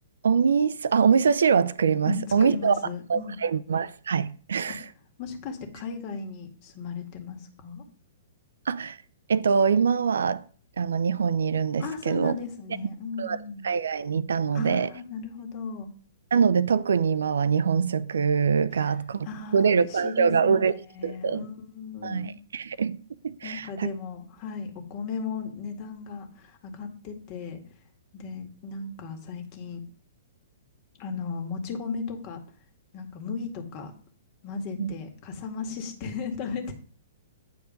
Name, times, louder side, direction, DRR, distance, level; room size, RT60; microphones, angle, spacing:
voice 1, 0.2-2.8 3.1-4.8 8.7-9.0 9.3-10.4 10.8-12.3 13.2-13.4 13.6-14.9 16.3-19.3 19.5-20.7 21.0-21.5 22.0-23.9 34.8-34.9, right 6 dB, 70° right, 0.5 m, -24 dB
voice 2, 2.1-3.4 4.7-4.8 5.2-7.8 11.8-13.7 14.5-15.9 19.2-22.3 23.4-27.6 28.1-29.8 31.0-32.4 32.9-33.9 34.4-36.7, left 5 dB, 40° left, 1.9 m, -36 dB
9.3 x 4.5 x 5.1 m
figure-of-eight pair, 115°, 0 cm